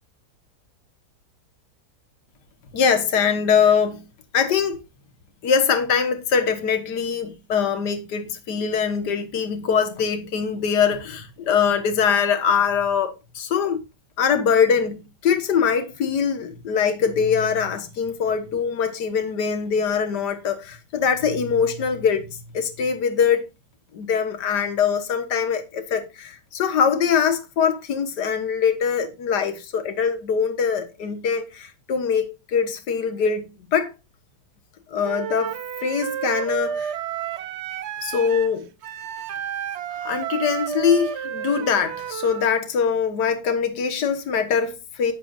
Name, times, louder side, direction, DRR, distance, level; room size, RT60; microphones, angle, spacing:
voice 1, 2.7-4.0 4.3-4.8 5.4-13.8 14.2-23.5 23.9-33.9 34.9-37.0 38.0-38.7 39.9-45.1, left 6 dB, 75° left, 1.9 m, -23 dB
Wind instrument woodwind instrument, 35.0-42.5, right 9 dB, 75° right, 0.6 m, -31 dB
11.5 x 10.0 x 2.5 m
omnidirectional pair, 1.8 m